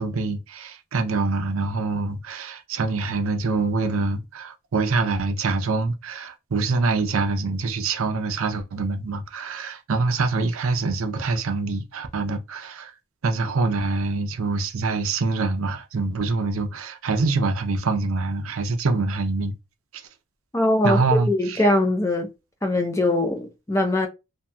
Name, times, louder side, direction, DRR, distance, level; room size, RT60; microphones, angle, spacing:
voice 1, 0.0-12.9 13.2-19.5 19.9-20.0 20.8-21.6, right 3 dB, 75° right, 0.5 m, -25 dB
voice 2, 20.5-22.3 22.6-24.1, left 1 dB, 15° left, 0.5 m, -22 dB
2.8 x 2.7 x 2.3 m
head